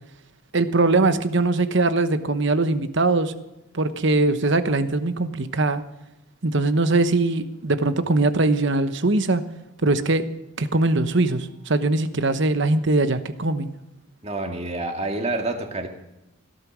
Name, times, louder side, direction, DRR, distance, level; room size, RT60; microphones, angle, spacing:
voice 1, 0.5-3.3 3.7-5.8 6.4-9.4 9.8-10.2 10.6-13.7, right 2 dB, 55° right, 11 dB, 1.1 m, -21 dB
voice 2, 14.2-15.9, right 2 dB, 30° right, 3 dB, 2.1 m, -28 dB
17.0 x 12.5 x 6.2 m, 0.93 s
head